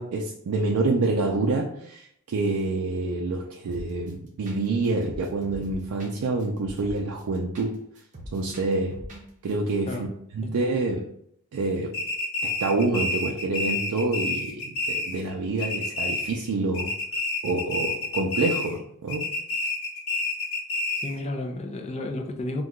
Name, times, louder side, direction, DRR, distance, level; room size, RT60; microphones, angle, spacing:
voice 1, 0.0-7.8 8.3-9.0 9.4-10.1 10.3-11.0 11.5-11.9 12.4-16.9 17.4-19.3, right 3 dB, 90° right, 0 dB, 0.4 m, -27 dB
sound 1, 3.7-4.1 4.4-4.6 4.8-7.7 8.0-9.2 9.5-9.6, equal, 35° right, 0.7 m, -41 dB
sound 2, 11.9-15.3 15.6-16.5 16.7-18.8 19.1-21.2, left 2 dB, 80° left, 0.8 m, -29 dB
voice 2, 21.0-22.6, left 2 dB, 30° left, 3 dB, 0.4 m, -32 dB
2.8 x 2.3 x 3.5 m, 0.71 s
head